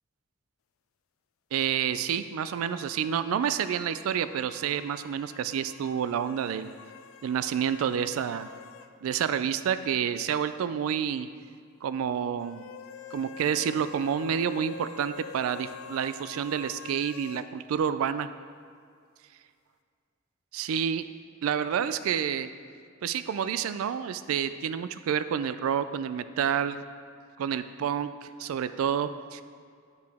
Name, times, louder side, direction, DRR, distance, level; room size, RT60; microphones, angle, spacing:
voice 1, 1.5-6.7 7.2-8.5 9.0-11.3 11.8-12.7 13.1-18.3 20.5-21.0 21.4-22.5 23.0-26.8 27.4-29.4, right 8 dB, 90° right, 12 dB, 0.3 m, -29 dB
sound 1, 2.4-8.9 9.2-9.3 12.4-17.5, left 6 dB, 70° left, 0.3 m, -46 dB
9.4 x 4.7 x 3.5 m, 2.2 s
head